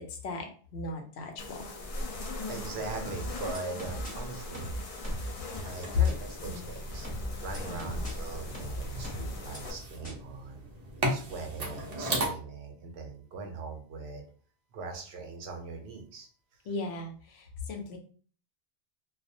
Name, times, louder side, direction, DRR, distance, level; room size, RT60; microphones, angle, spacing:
voice 1, 0.1-1.6 7.7-8.1 16.7-18.0, left 2 dB, 85° left, 3 dB, 0.9 m, -38 dB
sound 1, 1.4-9.7, left 1 dB, 55° left, 0.4 m, -39 dB
voice 2, 2.5-5.3 5.6-7.1 7.4-10.6 11.1-14.2 14.7-16.3, right 4 dB, 85° right, 3 dB, 0.9 m, -41 dB
sound 2, 3.0-4.1 4.5-5.3 6.0-6.1 7.0-8.1 8.5-9.6 10.0-10.1, right 1 dB, 10° left, 0.8 m, -38 dB
sound 3, 5.5-12.3, right 1 dB, 50° right, 0.6 m, -37 dB
2.3 x 2.1 x 2.6 m, 0.42 s
omnidirectional pair, 1.0 m